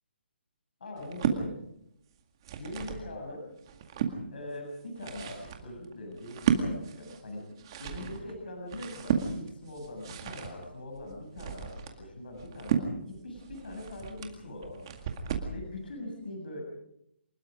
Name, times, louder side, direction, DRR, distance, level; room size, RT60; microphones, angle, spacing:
voice 1, 0.8-1.5 2.6-3.4 4.3-7.5 7.8-15.0 15.5-16.6, left 1 dB, 55° left, 2 dB, 7.3 m, -42 dB
sound 1, 1.0-1.4 2.2-3.1 3.5-4.2 4.8-15.6, right 7 dB, 25° right, 2.1 m, -34 dB
25.5 x 21.0 x 5.1 m, 0.79 s
hypercardioid pair, 175°, 6 cm